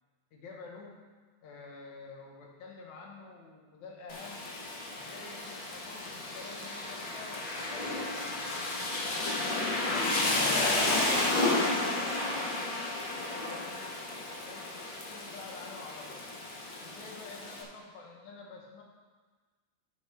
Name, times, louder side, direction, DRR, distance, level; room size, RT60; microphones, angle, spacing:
voice 1, 0.3-1.0 1.4-4.4 4.9-8.5 9.0-12.7 13.1-14.7 15.1-16.2 16.8-18.8, left 4 dB, 65° left, -1 dB, 2.5 m, -49 dB
Rain, 4.1-17.6, left 2 dB, 85° left, 1.0 m, -32 dB
10.5 x 8.8 x 3.4 m, 1.4 s
omnidirectional pair, 4.0 m